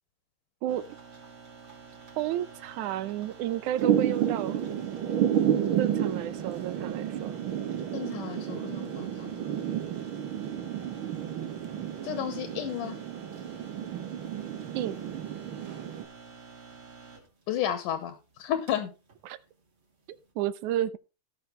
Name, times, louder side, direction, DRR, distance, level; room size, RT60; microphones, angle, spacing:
sound 1, 0.7-20.3, right 5 dB, 40° right, 3.8 m, -50 dB
voice 1, 2.2-4.6 5.8-7.3 14.8-15.0 19.2-19.4 20.1-21.0, right 12 dB, 75° right, 2.1 m, -31 dB
Thunder / Rain, 3.8-16.0, right 9 dB, 60° right, 1.4 m, -31 dB
voice 2, 7.9-9.4 12.0-13.0 17.5-18.9, left 10 dB, 80° left, 2.9 m, -32 dB
16.5 x 6.4 x 3.4 m
omnidirectional pair, 3.7 m